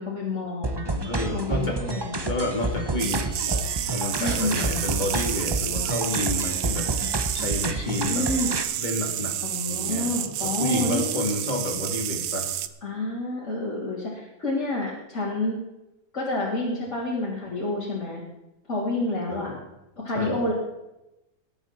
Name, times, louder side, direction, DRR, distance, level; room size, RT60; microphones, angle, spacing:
voice 1, 0.0-1.0 1.3-2.2 4.2-4.6 7.9-8.6 9.4-11.1 12.8-15.6 16.1-18.2 18.7-19.5 20.0-20.5, left 2 dB, 50° left, -8 dB, 3.6 m, -29 dB
sound 1, 0.6-8.6, right 2 dB, 20° right, 0.8 m, -29 dB
voice 2, 1.0-1.8 2.2-8.3 8.8-9.4 9.7-12.5 19.3-19.6 20.1-20.4, left 1 dB, 30° left, 2 dB, 2.6 m, -30 dB
sound 2, 3.0-12.7, right 11 dB, 85° right, 1.2 m, -30 dB
20.0 x 8.7 x 4.5 m, 0.95 s
omnidirectional pair, 1.6 m